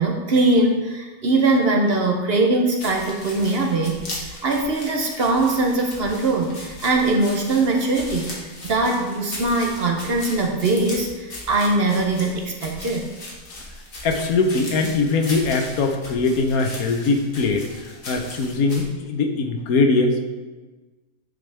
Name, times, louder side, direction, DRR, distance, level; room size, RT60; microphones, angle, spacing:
voice 1, 0.0-8.3 8.6-13.1, right 2 dB, 50° right, 2 dB, 0.9 m, -21 dB
sound 1, 2.8-18.8, left 2 dB, 65° left, 1.9 m, -38 dB
voice 2, 14.0-20.2, left 3 dB, 80° left, 4 dB, 1.3 m, -21 dB
9.8 x 5.1 x 3.3 m, 1.2 s
omnidirectional pair, 1.5 m